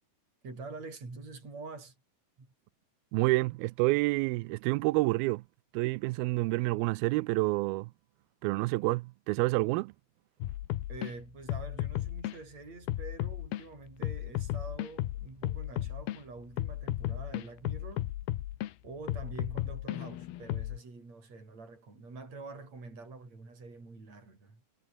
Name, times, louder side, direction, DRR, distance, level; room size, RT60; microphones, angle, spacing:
voice 1, 0.4-2.0 2.4-2.5 10.9-18.1 18.8-24.6, right 3 dB, 45° right, 9.2 m, -46 dB
voice 2, 3.1-5.4 5.7-7.9 8.4-9.9, right 22 dB, 80° right, 2.4 m, -28 dB
sound 1, 10.4-11.1 11.5-12.4 12.9-13.6 14.0-16.2 16.6-18.7 19.1-20.8, left 14 dB, 80° left, 3.1 m, -34 dB
omnidirectional pair, 4.4 m